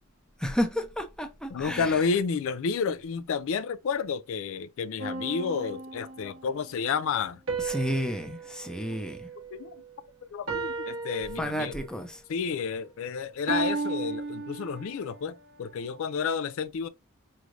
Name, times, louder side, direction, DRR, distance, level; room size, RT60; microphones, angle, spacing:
voice 1, 0.4-2.1 7.6-9.3 11.4-12.2, equal, 5° left, 0.7 m, -31 dB
voice 2, 1.5-7.4 8.9-9.0 9.5-9.7 10.2-11.8 12.3-16.9, left 5 dB, 65° left, 0.4 m, -30 dB
sound 1, 5.0-6.4 7.5-10.0 10.5-12.1 13.5-15.2, right 4 dB, 65° right, 1.3 m, -35 dB
4.8 x 3.2 x 2.6 m
head